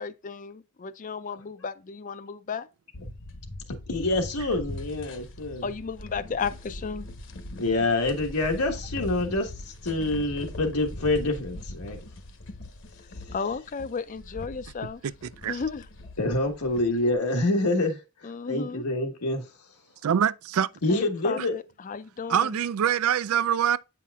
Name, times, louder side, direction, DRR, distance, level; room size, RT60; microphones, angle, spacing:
voice 1, 0.0-2.7 5.6-7.1 13.3-15.0 15.5-15.9 18.2-18.8 20.9-22.6, left 5 dB, 35° left, 0.4 m, -34 dB
sound 1, 2.9-17.1, left 1 dB, 55° left, 1.0 m, -41 dB
voice 2, 3.9-5.7 7.6-12.1 16.2-19.5 20.8-21.5, left 2 dB, 90° left, 1.3 m, -27 dB
voice 3, 20.0-20.7 22.3-23.8, right 9 dB, 70° right, 0.4 m, -24 dB
8.4 x 5.6 x 2.3 m
head